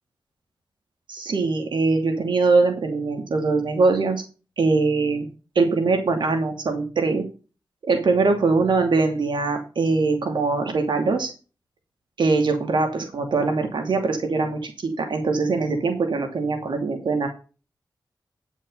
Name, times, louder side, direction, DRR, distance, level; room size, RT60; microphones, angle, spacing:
voice 1, 1.1-4.2 4.6-5.3 5.5-7.3 7.9-11.3 12.2-17.3, right 3 dB, 80° right, 4 dB, 2.7 m, -22 dB
10.0 x 6.4 x 5.6 m, 0.33 s
wide cardioid pair, 145°, 8 cm